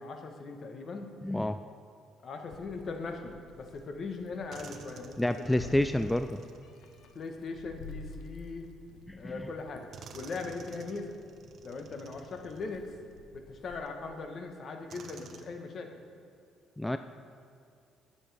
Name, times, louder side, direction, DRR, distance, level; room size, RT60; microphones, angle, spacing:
voice 1, 0.0-1.1 2.2-5.7 7.1-8.7 9.2-9.9 10.1-11.1 11.6-12.9 13.3-16.0, left 3 dB, 50° left, 4 dB, 1.2 m, -40 dB
voice 2, 1.2-1.6 5.2-6.4 9.1-9.4 16.8-17.0, left 1 dB, 5° left, 9 dB, 0.3 m, -29 dB
Meow, 2.5-13.8, left 3 dB, 75° left, 1.0 m, -51 dB
sound 1, 3.8-3.9 4.5-8.1 9.1-9.2 9.9-13.3 13.9-14.0 14.9-15.4, right 5 dB, 55° right, 0.8 m, -52 dB
18.5 x 7.0 x 3.4 m, 2.3 s
cardioid pair, 95°, 0 cm